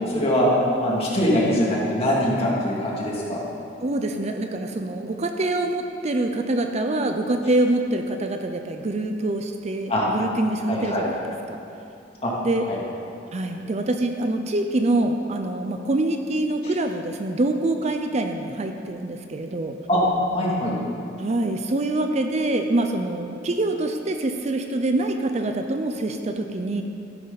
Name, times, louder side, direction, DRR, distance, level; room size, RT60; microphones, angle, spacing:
voice 1, 0.1-0.5 0.8-3.4 9.9-10.1 10.6-11.0 12.2-12.3 12.6-12.8 16.6-16.7 19.9-20.0 20.3-20.8, equal, 35° left, -5 dB, 2.5 m, -23 dB
voice 2, 3.8-11.2 11.5-11.6 12.4-12.7 13.3-19.7 21.2-26.8, right 2 dB, 35° right, 6 dB, 0.5 m, -25 dB
13.5 x 10.5 x 4.0 m, 2.6 s
head